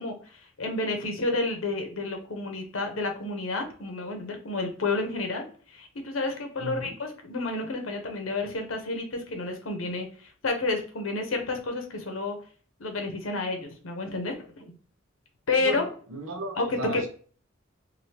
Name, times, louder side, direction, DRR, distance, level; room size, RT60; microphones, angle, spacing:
voice 1, 0.0-12.4 12.8-14.7 15.5-15.8 16.6-17.1, left 3 dB, 80° left, 4 dB, 0.8 m, -30 dB
voice 2, 15.6-17.1, right 1 dB, 90° right, 3 dB, 0.8 m, -35 dB
2.8 x 2.6 x 3.1 m, 0.42 s
head